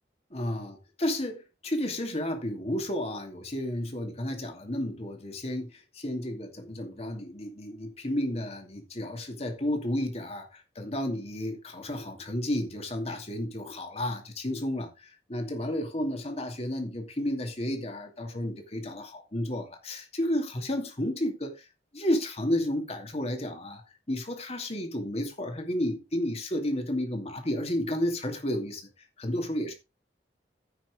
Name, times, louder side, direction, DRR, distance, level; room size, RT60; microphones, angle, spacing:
voice 1, 0.3-5.7 5.9-21.7 21.9-23.8 24.1-28.9 29.2-29.7, left 1 dB, 35° left, 2.6 m, -32 dB
15.5 x 6.1 x 3.7 m
head